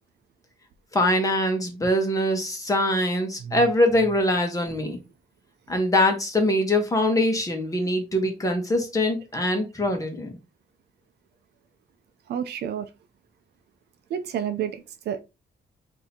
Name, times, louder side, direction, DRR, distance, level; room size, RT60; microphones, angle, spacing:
voice 1, 0.9-5.0 5.7-10.3, left 1 dB, 20° left, 1.1 m, -23 dB
voice 2, 12.3-12.9 14.1-15.2, right 9 dB, 75° right, 0.5 m, -30 dB
6.4 x 2.8 x 2.8 m
cardioid pair, 140°, 17 cm